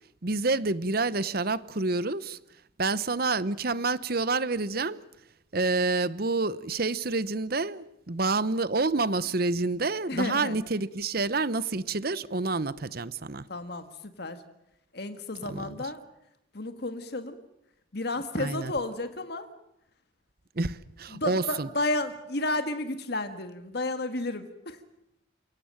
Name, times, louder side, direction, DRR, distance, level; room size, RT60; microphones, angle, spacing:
voice 1, 0.2-2.4 2.8-5.0 5.5-13.4 15.5-15.8 18.4-18.7 20.6-21.7, right 3 dB, 50° right, 0.9 m, -28 dB
voice 2, 10.1-10.6 13.5-14.4 14.9-16.0 16.5-17.4 17.9-19.5 21.1-24.8, left 2 dB, 55° left, 1.7 m, -32 dB
29.0 x 17.5 x 8.8 m
head